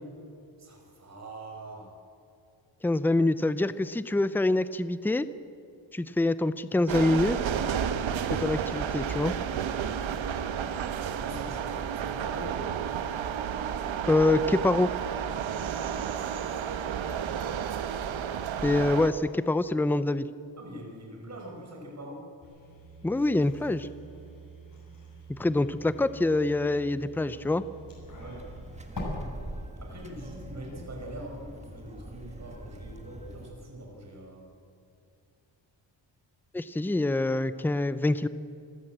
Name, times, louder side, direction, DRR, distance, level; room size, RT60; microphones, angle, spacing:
voice 1, 0.6-2.0 11.2-12.7 20.6-22.3 28.2-28.5 29.8-34.5, right 1 dB, 35° right, 0 dB, 5.7 m, -43 dB
voice 2, 2.8-5.3 5.9-7.4 8.4-9.3 14.1-14.9 18.6-20.3 23.0-23.9 25.3-27.6 36.5-38.3, left 2 dB, 5° left, 14 dB, 0.5 m, -25 dB
sound 1, 6.9-19.1, right 8 dB, 75° right, 1.3 m, -31 dB
sound 2, 22.4-29.0, right 1 dB, 45° left, 7.6 m, -47 dB
sound 3, 27.9-33.5, right 1 dB, 15° right, 1.8 m, -43 dB
26.5 x 15.0 x 7.9 m, 2.5 s
wide cardioid pair, 130°, 46 cm